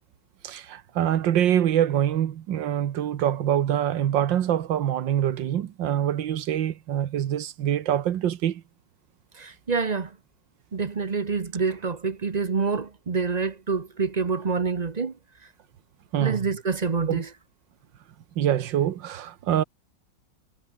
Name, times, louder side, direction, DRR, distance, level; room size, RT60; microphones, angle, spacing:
voice 1, 0.4-8.6 16.1-16.5 17.1-17.2 18.4-19.6, right 10 dB, 80° right, 1.8 m, -25 dB
voice 2, 9.4-10.1 10.7-15.1 16.2-17.3, right 5 dB, 35° right, 0.7 m, -27 dB
omnidirectional pair, 2.0 m